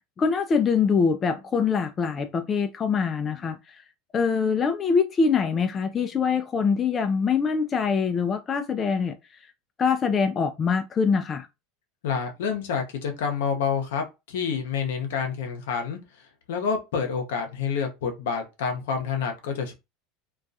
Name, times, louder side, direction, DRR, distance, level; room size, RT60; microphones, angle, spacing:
voice 1, 0.2-3.8 4.1-9.2 9.8-11.5, left 5 dB, 30° left, 0.3 m, -24 dB
voice 2, 12.0-16.0 16.5-19.7, left 6 dB, 75° left, 0.7 m, -28 dB
2.3 x 2.2 x 2.6 m
hypercardioid pair, 90°, 0 cm